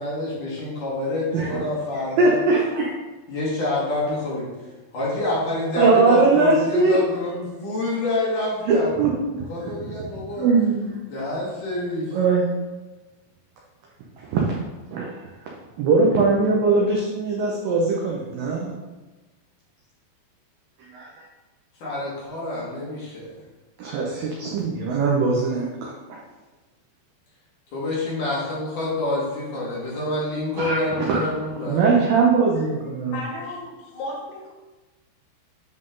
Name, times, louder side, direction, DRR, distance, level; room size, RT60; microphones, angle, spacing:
voice 1, 0.0-2.3 3.3-4.5 4.9-8.9 9.5-10.5 11.1-12.1 21.8-23.3 27.7-32.0, left 2 dB, 55° left, -6 dB, 2.9 m, -27 dB
voice 2, 1.3-1.6 2.2-2.9 5.8-7.0 8.7-9.5 10.4-11.0 12.1-12.4 14.2-14.4 14.9-15.1 15.8-18.7 20.9-21.2 23.8-26.2 30.6-31.3 31.7-33.2, right 3 dB, 85° right, -2 dB, 1.9 m, -21 dB
voice 3, 33.0-34.5, left 2 dB, 85° left, -1 dB, 3.6 m, -34 dB
9.6 x 3.8 x 3.8 m, 1.2 s
omnidirectional pair, 5.1 m